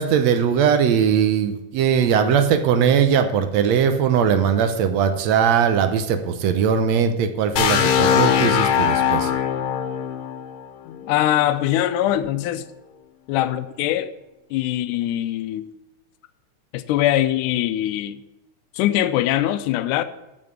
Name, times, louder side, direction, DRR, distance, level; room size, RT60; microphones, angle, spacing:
voice 1, 0.0-9.3, right 7 dB, 75° right, 1.8 m, -20 dB
sound 1, 7.6-11.4, left 8 dB, 70° left, 2.1 m, -21 dB
voice 2, 10.9-12.6 13.3-14.1 14.5-15.7 16.7-18.2 18.7-20.0, left 13 dB, 85° left, 2.1 m, -22 dB
8.0 x 7.5 x 7.9 m
omnidirectional pair, 3.5 m